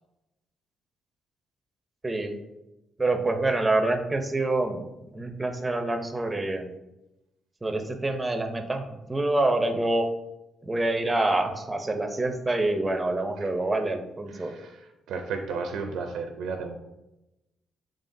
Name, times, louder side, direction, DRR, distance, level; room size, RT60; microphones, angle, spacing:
voice 1, 2.0-2.4 3.0-6.7 7.6-10.1 10.6-14.5, right 2 dB, 15° right, 6 dB, 0.5 m, -26 dB
voice 2, 14.3-16.8, right 4 dB, 80° right, 4 dB, 0.4 m, -34 dB
3.7 x 3.6 x 2.6 m, 0.93 s
cardioid pair, 90°, 0 cm